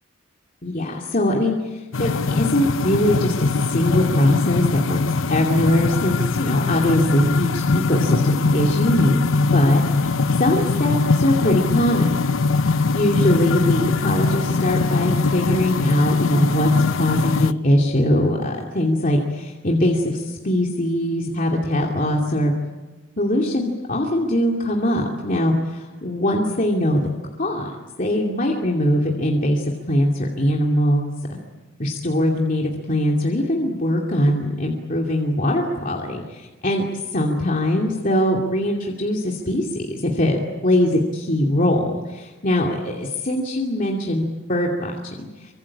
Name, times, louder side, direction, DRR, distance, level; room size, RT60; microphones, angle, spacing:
voice 1, 0.6-5.0 5.3-9.2 9.5-12.2 12.9-22.5 23.2-25.5 26.0-27.0 27.4-31.1 31.8-36.8 37.1-45.1, left 1 dB, 40° left, -1 dB, 2.7 m, -21 dB
sound 1, 1.9-17.5, left 4 dB, 75° left, 0.8 m, -21 dB
27.0 x 24.5 x 8.7 m, 1.2 s
head